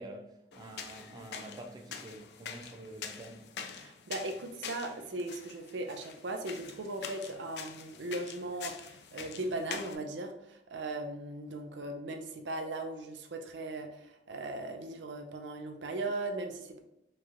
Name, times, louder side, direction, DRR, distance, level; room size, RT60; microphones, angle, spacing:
voice 1, 0.0-3.5, right 1 dB, 20° right, 0.3 m, -47 dB
sound 1, 0.5-10.0, left 7 dB, 65° left, 0.4 m, -45 dB
voice 2, 3.7-16.8, right 2 dB, 90° right, 0.6 m, -38 dB
4.5 x 3.0 x 2.5 m
head